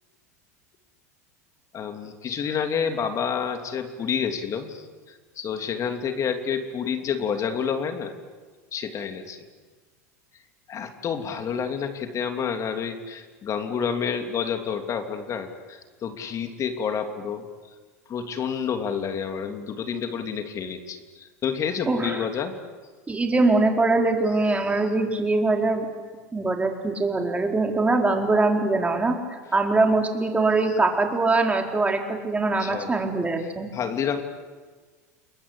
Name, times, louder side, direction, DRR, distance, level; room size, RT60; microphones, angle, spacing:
voice 1, 1.7-4.8 5.4-8.1 8.7-9.4 10.7-17.4 18.1-22.6 32.6-32.9 33.7-34.2, left 7 dB, 35° left, 6 dB, 3.0 m, -29 dB
voice 2, 21.9-22.2 23.1-25.9 26.3-29.2 29.5-33.7, right 3 dB, 15° right, 3 dB, 4.3 m, -22 dB
29.5 x 21.5 x 8.7 m, 1.4 s
hypercardioid pair, 90°, 9 cm